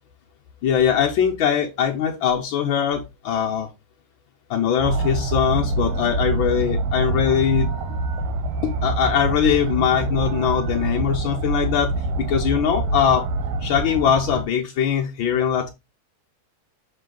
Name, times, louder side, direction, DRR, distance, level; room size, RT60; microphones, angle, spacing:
voice 1, 0.6-3.7 4.5-8.0 8.6-11.9 12.2-13.2 13.6-15.7, left 8 dB, 80° left, 0 dB, 1.1 m, -21 dB
sound 1, 4.8-14.4, right 2 dB, 80° right, 2.2 m, -25 dB
6.6 x 3.8 x 3.8 m, 0.25 s
omnidirectional pair, 3.3 m